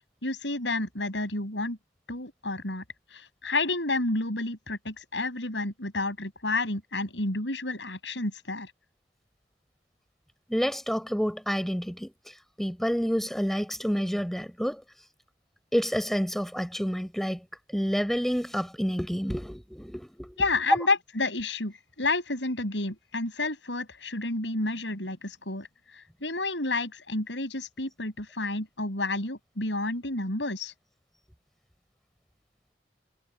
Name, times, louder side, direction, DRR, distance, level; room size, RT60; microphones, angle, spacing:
voice 1, 0.2-1.8 2.1-2.8 3.1-8.7 20.4-25.7 26.2-30.7, left 2 dB, 90° left, 6.6 m, -30 dB
voice 2, 10.5-12.1 12.6-14.8 15.7-17.4 17.7-20.4 20.7-20.8, equal, ahead, 4.3 m, -28 dB
head